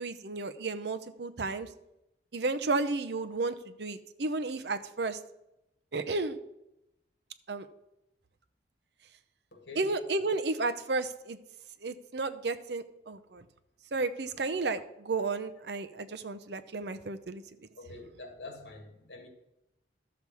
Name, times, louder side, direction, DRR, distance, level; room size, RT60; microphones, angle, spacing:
voice 1, 0.0-1.7 2.3-5.2 5.9-6.4 7.5-7.7 9.7-11.4 11.8-13.4 13.9-17.4, right 3 dB, 65° right, 0.7 m, -33 dB
voice 2, 9.5-9.9 17.8-19.3, left 2 dB, 70° left, 2.2 m, -46 dB
13.0 x 7.0 x 4.8 m
head